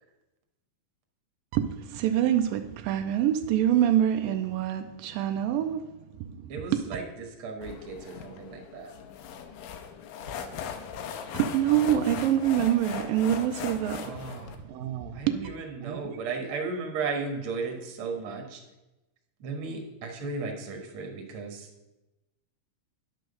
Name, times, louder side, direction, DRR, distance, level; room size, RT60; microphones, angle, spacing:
voice 1, 1.5-5.9 6.2-6.8 11.3-14.3 14.6-15.4 15.8-16.1, right 11 dB, 85° right, 7 dB, 2.3 m, -26 dB
voice 2, 6.5-8.9 14.0-14.6 15.1-18.6 19.4-21.7, right 4 dB, 50° right, 2 dB, 1.8 m, -35 dB
sound 1, 7.6-14.6, left 7 dB, 80° left, 2.6 m, -39 dB
10.5 x 6.3 x 6.6 m, 1.0 s
omnidirectional pair, 4.1 m